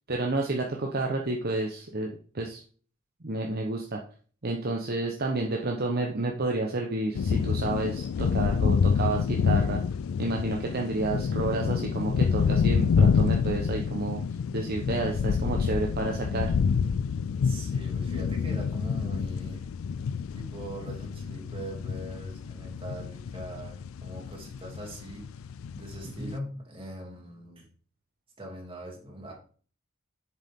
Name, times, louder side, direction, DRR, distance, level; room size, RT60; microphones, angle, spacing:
voice 1, 0.1-2.6 3.2-4.0 4.4-9.8 10.2-14.2 14.5-16.5 26.2-26.3, right 2 dB, 50° right, 1 dB, 1.0 m, -30 dB
sound 1, 7.2-26.4, left 6 dB, 75° left, 0.3 m, -28 dB
voice 2, 17.4-19.7 20.3-25.2 25.8-27.6 28.4-29.3, right 1 dB, 25° right, -1 dB, 2.7 m, -41 dB
7.9 x 7.3 x 3.7 m, 0.42 s
head